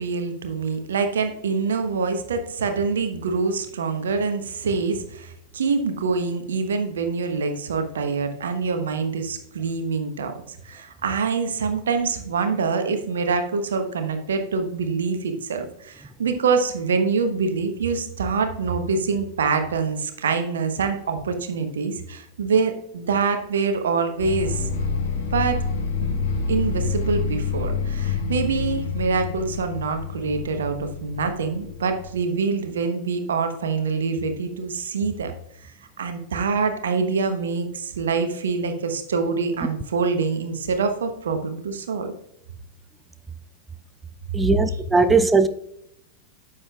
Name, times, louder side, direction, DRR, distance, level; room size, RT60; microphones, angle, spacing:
voice 1, 0.0-24.7 25.3-25.6 26.0-26.2 26.5-35.3 35.6-35.7 36.0-42.1, right 5 dB, 65° right, 1.1 m, -25 dB
sound 1, 24.2-32.1, left 4 dB, 55° left, 1.1 m, -27 dB
voice 2, 44.3-45.5, right 4 dB, 10° right, 0.4 m, -18 dB
9.8 x 7.3 x 2.4 m
figure-of-eight pair, 90°, 0 cm